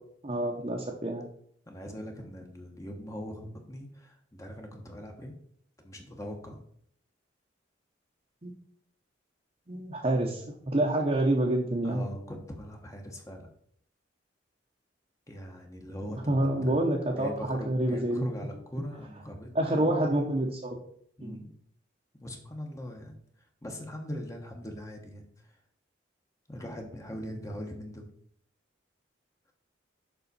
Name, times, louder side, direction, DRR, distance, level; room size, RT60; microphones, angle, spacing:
voice 1, 0.2-1.3 8.4-8.5 9.7-12.0 16.3-18.3 19.5-20.8 21.2-21.4, right 1 dB, 35° right, -1 dB, 0.9 m, -27 dB
voice 2, 1.7-5.3 5.8-6.6 11.8-13.5 15.3-16.8 17.1-19.9 21.2-21.5 22.2-25.6 26.5-28.1, equal, 15° left, 2 dB, 1.0 m, -41 dB
7.0 x 5.6 x 4.1 m, 0.64 s
head